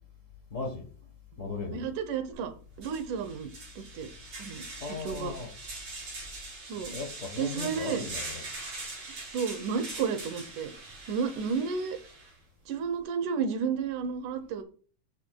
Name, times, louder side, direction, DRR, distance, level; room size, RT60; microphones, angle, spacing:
voice 1, 0.5-0.9 1.4-1.9 4.8-5.5 6.9-8.4, left 3 dB, 65° left, 2 dB, 0.7 m, -37 dB
voice 2, 1.7-2.5 2.8-3.5 3.9-4.1 4.4-4.6 5.0-5.3 6.7-7.0 7.4-8.0 9.3-10.7 11.1-12.0 12.7-14.6, right 6 dB, 85° right, 9 dB, 2.5 m, -31 dB
sound 1, 2.3-2.4 2.8-12.3, right 2 dB, 50° right, 5.5 m, -42 dB
12.0 x 7.7 x 2.3 m, 0.41 s
omnidirectional pair, 3.5 m